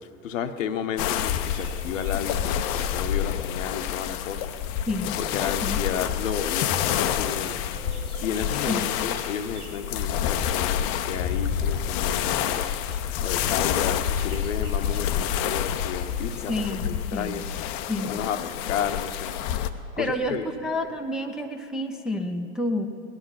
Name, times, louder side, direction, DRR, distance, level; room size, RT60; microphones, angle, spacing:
voice 1, 0.2-4.5 5.2-7.6 8.2-12.6 13.2-17.4 18.0-19.3 20.0-20.5, left 8 dB, 65° left, 9 dB, 0.9 m, -32 dB
sound 1, 1.0-19.7, left 9 dB, 35° left, 0.6 m, -28 dB
sound 2, 1.4-17.2, right 1 dB, 85° right, 1.6 m, -47 dB
voice 2, 4.9-5.2 5.6-5.8 8.7-8.9 16.5-17.4 17.9-18.2 20.0-22.9, left 1 dB, ahead, 1 dB, 0.6 m, -29 dB
17.5 x 11.5 x 5.7 m, 2.7 s
hypercardioid pair, 100°, 42 cm